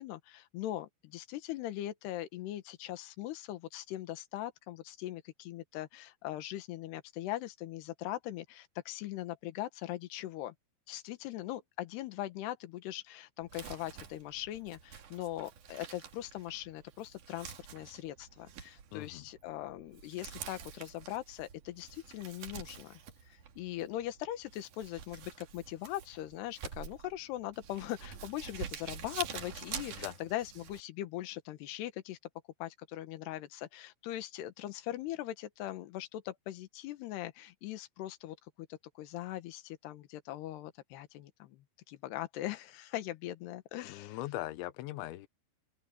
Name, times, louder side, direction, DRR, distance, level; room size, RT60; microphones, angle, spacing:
voice 1, 0.0-10.5 10.9-23.0 23.3-32.2 32.6-38.4 39.0-44.2, left 14 dB, 70° left, 3.3 m, -41 dB
Crumpling crinkling, 13.4-30.8, right 8 dB, 55° right, 3.0 m, -47 dB
voice 2, 18.9-19.3 30.0-30.1 43.8-45.3, left 16 dB, 90° left, 3.3 m, -40 dB
open air
omnidirectional pair, 5.2 m